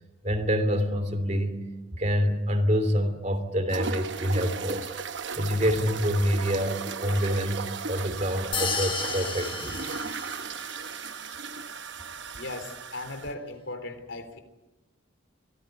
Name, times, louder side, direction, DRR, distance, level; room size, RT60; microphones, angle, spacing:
voice 1, 0.2-1.6 2.0-4.9 5.3-9.8, equal, 35° right, 8 dB, 3.1 m, -26 dB
sound 1, 3.7-13.3, right 5 dB, 65° right, 0.9 m, -36 dB
sound 2, 8.5-10.8, left 5 dB, 25° left, 1.4 m, -33 dB
voice 2, 12.4-14.4, left 2 dB, 75° left, 8 dB, 3.5 m, -37 dB
24.5 x 17.5 x 9.2 m, 1.1 s
head